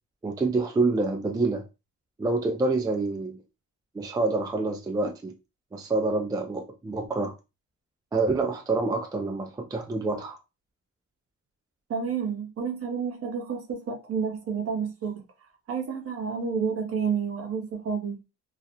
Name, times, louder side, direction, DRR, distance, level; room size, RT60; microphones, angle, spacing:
voice 1, 0.2-1.6 2.2-3.4 3.9-5.3 5.7-7.3 8.1-10.4, right 3 dB, 15° right, 0.3 m, -27 dB
voice 2, 11.9-15.1 15.7-18.2, right 6 dB, 50° right, 0.8 m, -30 dB
2.4 x 2.0 x 2.8 m
cardioid pair, 90°, 30 cm